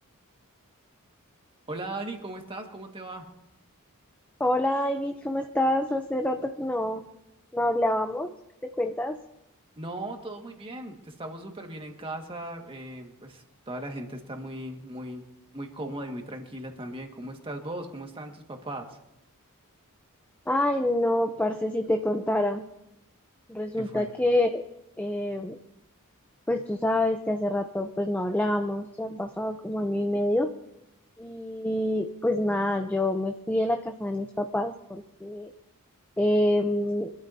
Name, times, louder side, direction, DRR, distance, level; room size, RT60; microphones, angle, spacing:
voice 1, 1.7-3.3 9.8-15.2 15.5-19.0 23.8-24.1, right 1 dB, 25° right, 3 dB, 1.8 m, -38 dB
voice 2, 4.4-7.0 7.5-8.3 8.6-9.2 20.5-22.6 23.5-24.6 25.0-25.6 26.5-30.5 31.2-35.5 36.2-37.1, left 1 dB, 5° left, 5 dB, 0.6 m, -27 dB
24.0 x 13.0 x 2.8 m, 0.87 s
head